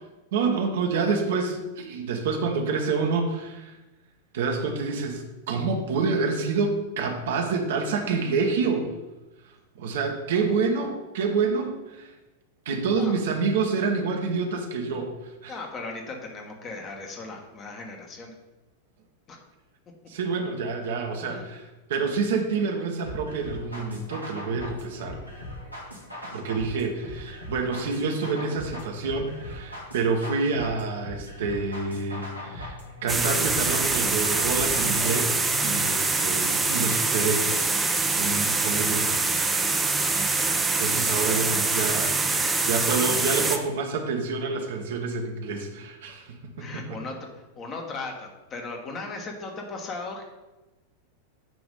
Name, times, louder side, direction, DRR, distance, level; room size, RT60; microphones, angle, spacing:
voice 1, 0.3-3.8 4.3-8.9 9.7-12.1 12.6-15.1 15.4-15.5 20.1-25.2 26.3-37.5 38.1-39.2 40.8-47.0, right 4 dB, 55° right, 3 dB, 1.0 m, -28 dB
voice 2, 15.5-18.3 19.3-19.4 21.2-21.4 41.0-41.1 46.6-47.3 47.5-50.3, left 3 dB, 30° left, 2 dB, 1.3 m, -37 dB
sound 1, 23.0-35.0, left 1 dB, 85° left, 1.5 m, -39 dB
sound 2, 33.1-43.6, right 3 dB, 10° right, 0.6 m, -24 dB
9.1 x 3.1 x 5.3 m, 1.1 s
figure-of-eight pair, 90°, 0 cm